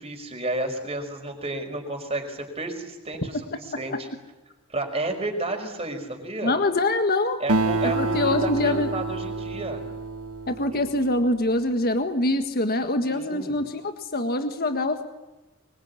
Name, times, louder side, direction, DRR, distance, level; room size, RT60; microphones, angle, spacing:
voice 1, 0.0-4.1 4.7-6.5 7.4-9.8 10.7-10.8 13.0-13.6, right 2 dB, 25° right, 4 dB, 5.6 m, -31 dB
voice 2, 6.4-7.4 7.9-8.9 10.5-15.1, left 2 dB, 45° left, 7 dB, 1.7 m, -24 dB
Acoustic guitar, 7.5-11.3, right 3 dB, 90° right, 1.7 m, -28 dB
25.0 x 23.5 x 9.8 m, 1.1 s
head